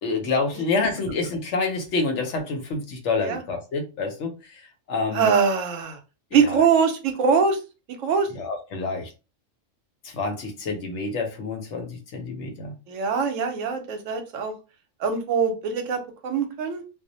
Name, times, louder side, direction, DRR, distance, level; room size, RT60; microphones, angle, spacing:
voice 1, 0.0-4.6 4.9-5.3 6.3-6.6 8.3-9.1 10.0-12.7, left 3 dB, 70° left, 1.0 m, -28 dB
voice 2, 5.1-6.0 6.3-7.6 7.9-8.3 12.9-14.5 15.0-16.8, right 6 dB, 85° right, 1.0 m, -23 dB
2.3 x 2.0 x 2.7 m
omnidirectional pair, 1.3 m